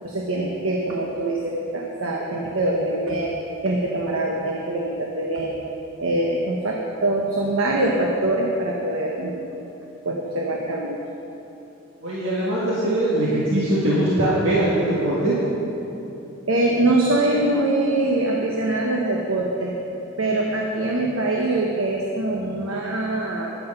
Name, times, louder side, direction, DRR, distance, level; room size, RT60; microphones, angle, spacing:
voice 1, 0.0-3.3 3.6-5.6 6.0-9.4 10.0-11.0 16.5-19.7 20.2-23.5, right 2 dB, 85° right, -1 dB, 1.2 m, -23 dB
voice 2, 12.0-15.4, right 1 dB, 70° right, -8 dB, 2.0 m, -21 dB
10.5 x 9.7 x 6.8 m, 2.9 s
head